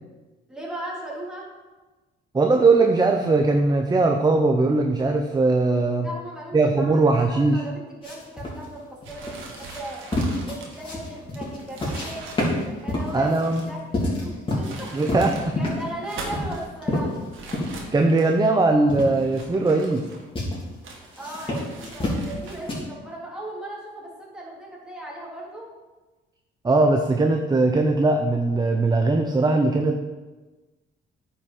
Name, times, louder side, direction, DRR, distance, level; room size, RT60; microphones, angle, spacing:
voice 1, 0.5-1.5 6.0-6.9 7.3-10.0 10.5-12.3 12.8-13.3 13.7-15.0 15.6-17.2 21.1-25.7, right 1 dB, 5° right, -4 dB, 3.3 m, -37 dB
voice 2, 2.3-6.1 6.5-7.6 13.1-13.7 14.9-15.6 17.9-20.0 26.6-30.0, right 3 dB, 20° right, 4 dB, 0.7 m, -20 dB
sound 1, 8.0-12.1 12.4-14.8 15.1-15.9 16.3-17.8 18.2-18.3 18.9-19.1 19.7-20.0 20.4-20.6 21.1-22.7, left 1 dB, 25° left, 3.4 m, -28 dB
sound 2, 9.0-13.8 14.4-15.5 15.9-16.7 17.3-18.5 19.1-20.4 20.8-22.8, right 3 dB, 80° right, 1.9 m, -41 dB
9.4 x 5.7 x 5.7 m, 1.2 s
cardioid pair, 90°, 20 cm